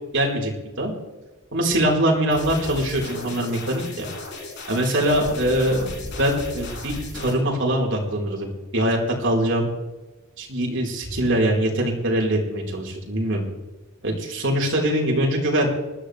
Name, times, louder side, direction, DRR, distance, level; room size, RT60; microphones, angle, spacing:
voice 1, 0.1-0.5 0.8-1.0 1.5-4.1 4.7-5.9 6.2-8.5 8.7-9.7 10.4-13.4 14.0-15.7, right 1 dB, 60° right, -1 dB, 4.3 m, -22 dB
sound 1, 2.3-7.3, left 2 dB, 55° left, 5.5 m, -35 dB
20.0 x 13.5 x 3.4 m, 1.1 s
head